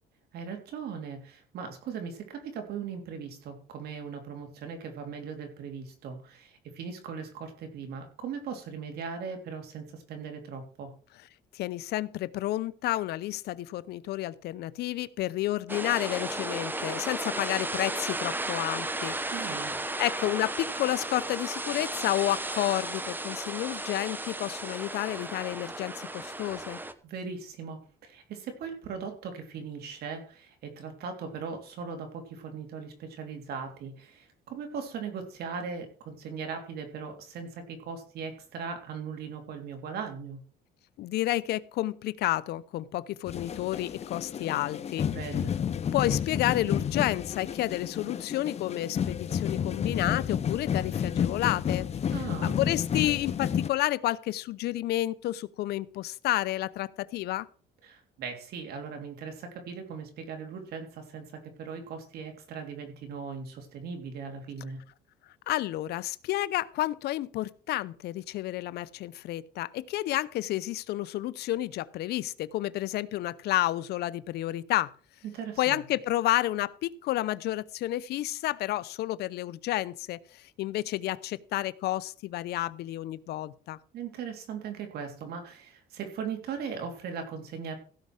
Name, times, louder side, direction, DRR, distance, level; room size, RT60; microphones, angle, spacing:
voice 1, 0.3-10.9 19.3-19.7 27.0-40.4 45.1-45.5 52.1-52.6 57.8-64.8 75.3-75.8 83.9-87.8, right 6 dB, 70° right, 5 dB, 3.5 m, -39 dB
voice 2, 11.5-19.1 20.0-26.8 41.0-45.1 45.9-52.1 52.4-57.5 65.5-74.9 75.6-83.8, left 15 dB, 75° left, 18 dB, 0.7 m, -30 dB
sound 1, 15.7-26.9, right 2 dB, 10° right, 1.1 m, -34 dB
sound 2, 43.3-53.7, left 8 dB, 40° left, 0.9 m, -31 dB
16.0 x 5.6 x 6.3 m, 0.42 s
cardioid pair, 110°, 17 cm